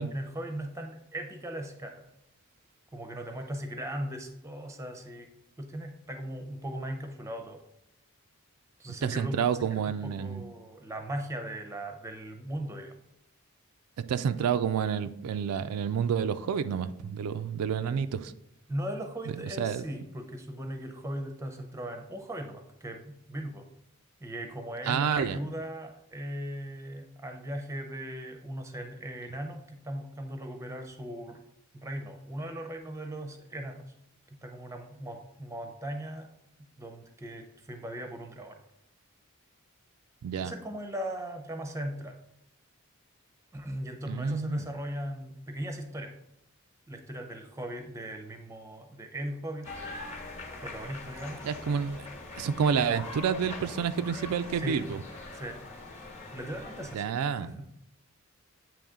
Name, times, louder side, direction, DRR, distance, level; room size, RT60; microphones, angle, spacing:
voice 1, 0.1-2.1 2.9-5.3 5.6-7.6 8.8-9.4 10.0-12.9 18.7-23.7 24.2-31.4 31.7-33.9 34.4-36.3 36.8-38.6 40.4-42.2 43.5-46.1 46.9-49.7 50.6-51.5 54.6-54.8 55.3-55.6 56.3-57.1 57.4-57.7, right 1 dB, 15° right, 5 dB, 0.5 m, -38 dB
voice 2, 9.0-10.4 14.1-18.3 19.4-19.8 24.9-25.4 40.2-40.5 44.1-44.7 51.4-52.1 52.4-55.0 56.9-57.6, right 7 dB, 90° right, 11 dB, 0.3 m, -29 dB
sound 1, 49.6-56.9, left 2 dB, 30° left, 1.0 m, -43 dB
8.5 x 3.0 x 3.6 m, 0.79 s
head